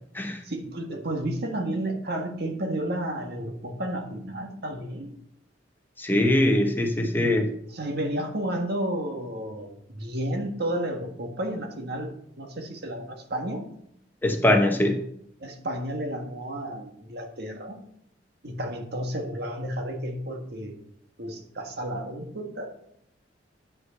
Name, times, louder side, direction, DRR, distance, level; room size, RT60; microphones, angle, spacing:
voice 1, 0.4-5.2 7.7-13.7 15.4-17.8 18.4-20.8 21.2-22.7, right 1 dB, 60° right, 3 dB, 1.6 m, -32 dB
voice 2, 6.0-7.5 14.2-15.0, left 1 dB, 10° left, 3 dB, 1.0 m, -22 dB
9.6 x 5.4 x 6.8 m, 0.70 s
head